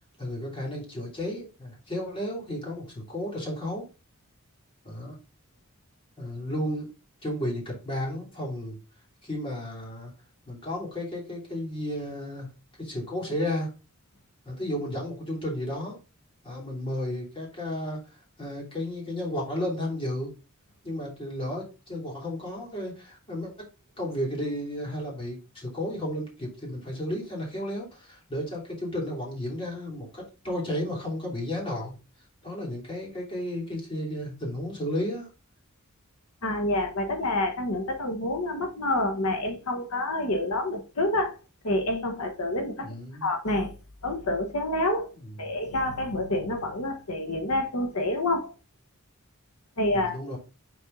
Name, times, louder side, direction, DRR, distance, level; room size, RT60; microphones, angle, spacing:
voice 1, 0.2-3.9 4.8-5.2 6.2-6.9 7.2-8.8 9.2-10.1 10.5-12.5 12.8-13.7 14.4-16.0 16.4-20.3 20.8-23.5 24.0-31.9 32.4-35.3 42.8-43.3 49.9-50.4, left 1 dB, 25° left, 2.9 m, -33 dB
voice 2, 36.4-41.4 41.6-42.9 43.2-43.8 44.0-48.5 49.8-50.2, left 1 dB, 90° left, 1.2 m, -28 dB
6.2 x 4.2 x 3.8 m
head